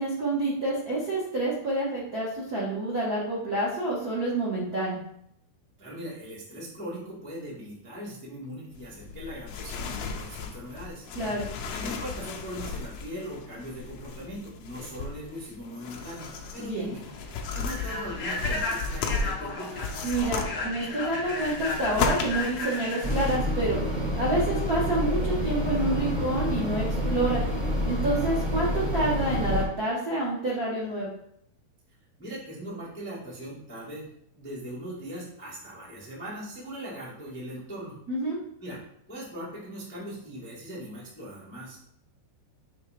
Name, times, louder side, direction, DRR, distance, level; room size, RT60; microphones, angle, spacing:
voice 1, 0.0-5.0 11.1-11.5 16.6-16.9 20.0-23.8 24.2-27.4 27.8-31.1 38.1-38.4, right 1 dB, 75° right, -7 dB, 0.8 m, -28 dB
voice 2, 5.8-11.0 11.7-17.0 17.5-19.8 32.2-34.0 34.3-38.0 38.6-38.8 39.1-41.8, equal, 10° left, -7 dB, 0.5 m, -40 dB
sound 1, 8.7-23.4, left 5 dB, 85° left, 1.7 m, -35 dB
Human voice / Train, 15.9-24.8, left 2 dB, 45° left, 1.9 m, -35 dB
sound 2, 23.0-29.6, equal, 40° right, 1.7 m, -28 dB
6.9 x 3.4 x 5.1 m, 0.71 s
omnidirectional pair, 4.6 m